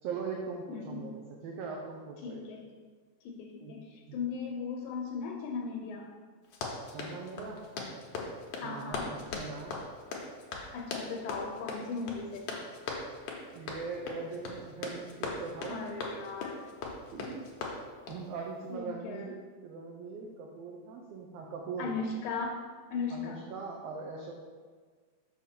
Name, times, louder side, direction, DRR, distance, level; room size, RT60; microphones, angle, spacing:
voice 1, 0.0-2.4 3.6-3.8 4.1-4.2 6.9-7.6 8.6-9.8 13.5-15.8 17.1-17.4 18.1-21.9 23.1-24.3, right 5 dB, 75° right, 0 dB, 1.5 m, -41 dB
voice 2, 0.7-1.1 2.2-2.6 3.2-6.1 8.6-9.1 10.7-12.7 15.7-16.6 18.7-19.3 21.8-22.6 22.9-23.4, left 4 dB, 85° left, 1 dB, 2.1 m, -37 dB
Run, 6.4-18.3, left 3 dB, 65° left, 1.7 m, -39 dB
6.3 x 5.3 x 4.3 m, 1.5 s
omnidirectional pair, 3.3 m